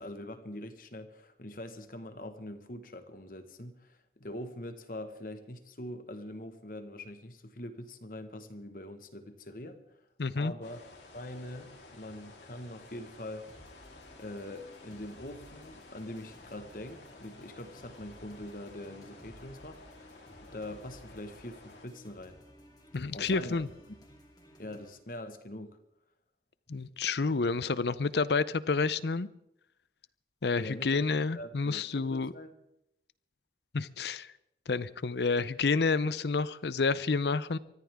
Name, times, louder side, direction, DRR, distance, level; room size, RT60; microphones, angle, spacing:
voice 1, 0.0-9.8 10.3-10.9 11.1-13.5 14.1-19.8 20.4-22.4 23.1-23.5 24.6-25.8 30.5-31.1 31.3-32.6, left 1 dB, 50° left, 8 dB, 1.5 m, -43 dB
voice 2, 10.2-10.5 22.9-23.7 26.7-29.3 30.4-32.3 33.7-34.3 34.7-37.6, left 4 dB, 70° left, 17 dB, 0.6 m, -29 dB
sound 1, 10.6-21.9, left 2 dB, 90° left, 3.6 m, -53 dB
sound 2, 13.5-24.9, equal, 20° left, 3.0 m, -56 dB
24.0 x 14.0 x 3.6 m, 0.80 s
head